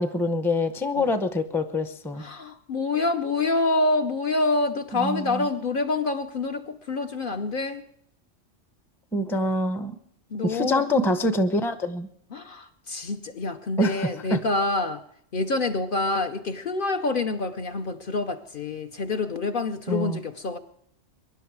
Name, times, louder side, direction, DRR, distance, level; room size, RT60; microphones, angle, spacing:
voice 1, 0.0-2.2 4.9-5.5 9.1-9.9 10.4-12.1 13.8-14.4 19.9-20.2, left 1 dB, ahead, 10 dB, 0.6 m, -25 dB
voice 2, 2.2-7.9 10.3-10.8 12.3-15.0 15.3-20.6, left 3 dB, 50° left, 6 dB, 0.9 m, -27 dB
23.5 x 11.0 x 4.7 m, 0.69 s
omnidirectional pair, 1.3 m